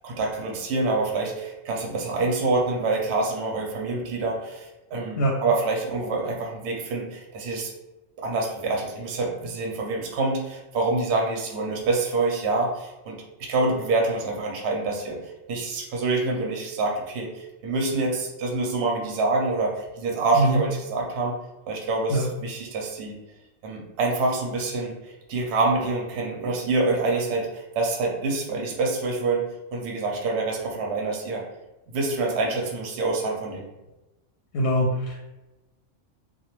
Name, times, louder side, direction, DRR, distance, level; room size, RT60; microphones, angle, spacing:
voice 1, 0.0-7.7 8.2-21.4 21.7-23.2 23.6-29.5 29.7-31.4 31.9-33.7, right 3 dB, 65° right, 0 dB, 0.8 m, -26 dB
voice 2, 34.5-35.1, right 1 dB, 65° left, -3 dB, 0.8 m, -22 dB
2.2 x 2.2 x 3.0 m, 1.0 s
omnidirectional pair, 1.3 m